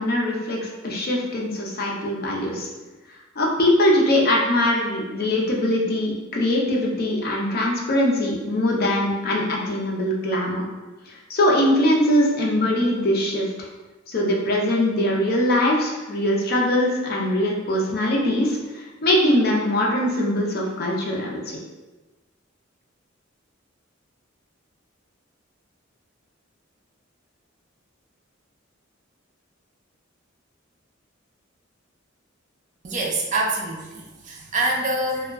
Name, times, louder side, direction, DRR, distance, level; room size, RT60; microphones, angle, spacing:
voice 1, 0.0-2.7 3.4-10.6 11.1-13.7 14.1-21.6, left 1 dB, 50° left, -2 dB, 0.5 m, -22 dB
voice 2, 32.8-35.3, right 2 dB, 40° right, -1 dB, 0.4 m, -25 dB
2.2 x 2.1 x 3.4 m, 1.2 s
head